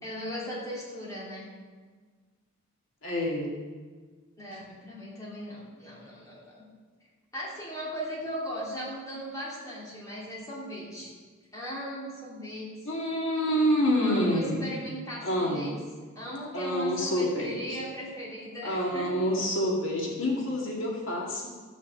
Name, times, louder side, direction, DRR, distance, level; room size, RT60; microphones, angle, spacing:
voice 1, 0.0-1.5 4.4-6.7 7.3-11.1 11.5-12.7 14.0-15.8 16.1-19.1, equal, 15° left, -6 dB, 3.1 m, -38 dB
voice 2, 3.0-3.5 4.5-4.6 12.8-14.6 15.2-15.7 16.5-17.8 18.6-21.5, equal, 65° left, -3 dB, 2.1 m, -27 dB
14.0 x 6.1 x 7.6 m, 1.5 s
head